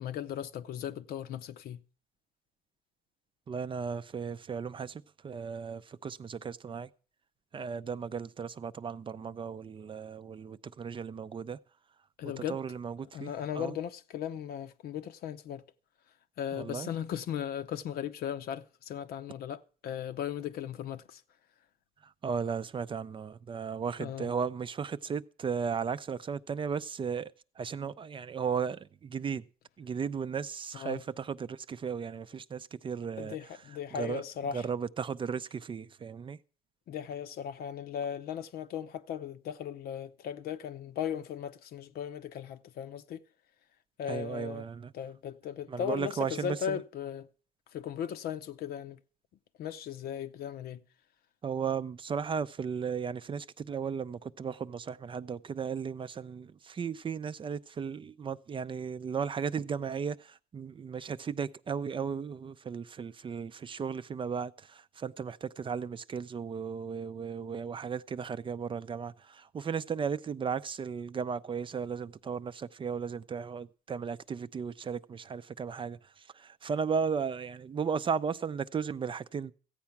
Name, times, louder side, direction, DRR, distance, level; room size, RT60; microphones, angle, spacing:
voice 1, 0.0-1.8 12.2-12.6 13.1-15.6 16.4-21.2 24.0-24.3 30.7-31.0 33.2-34.7 36.9-43.2 44.0-44.7 44.9-47.3 47.7-49.0 49.6-50.8, left 9 dB, 65° left, 0.7 m, -37 dB
voice 2, 3.5-6.9 7.5-11.6 12.4-13.7 16.5-16.9 22.2-27.3 27.6-29.4 29.8-33.4 33.9-34.2 34.5-36.4 44.1-44.9 45.7-46.8 51.4-79.5, right 6 dB, 30° right, 0.5 m, -35 dB
14.5 x 8.6 x 5.8 m
cardioid pair, 110°, 17 cm